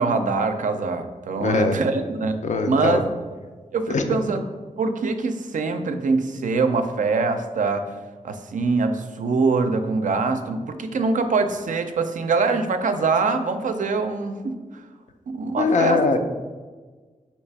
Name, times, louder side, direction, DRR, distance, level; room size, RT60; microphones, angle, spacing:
voice 1, 0.0-2.3 2.7-3.0 3.7-4.4 4.8-7.8 8.2-14.8 15.3-16.0, right 4 dB, 70° right, 7 dB, 0.4 m, -23 dB
voice 2, 1.4-1.8 2.4-3.0 3.9-4.2 15.6-16.2, left 4 dB, 65° left, 6 dB, 0.5 m, -21 dB
3.3 x 3.0 x 4.6 m, 1.4 s
cardioid pair, 45°, 14 cm